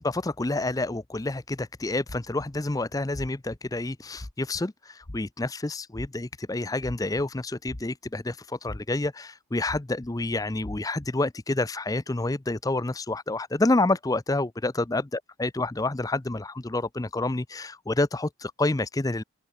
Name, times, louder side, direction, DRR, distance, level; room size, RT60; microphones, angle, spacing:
voice 1, 0.0-19.2, left 2 dB, 15° left, 0.5 m, -28 dB
sound 1, 2.1-2.6 3.1-3.6 4.1-4.6 5.0-5.5 5.9-6.4 6.8-7.2 7.7-8.3 8.6-9.1 9.7-10.1 10.6-11.1, left 1 dB, 40° left, 1.4 m, -40 dB
open air
head